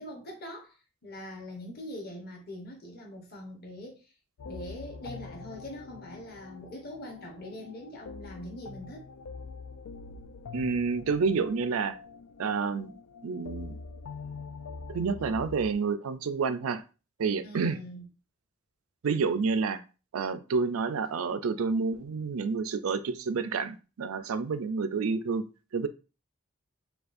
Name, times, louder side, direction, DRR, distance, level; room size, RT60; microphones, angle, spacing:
voice 1, 0.0-4.0 4.5-9.0 15.1-15.3 17.4-18.0, left 1 dB, 45° left, 1.0 m, -43 dB
sound 1, 4.4-15.8, left 4 dB, 85° left, 0.4 m, -44 dB
voice 2, 10.5-12.0 12.4-12.9 13.2-13.8 14.9-16.8 17.2-17.8 19.0-19.8 20.1-25.4 25.7-25.9, right 5 dB, 85° right, 0.4 m, -29 dB
6.7 x 2.4 x 2.5 m
head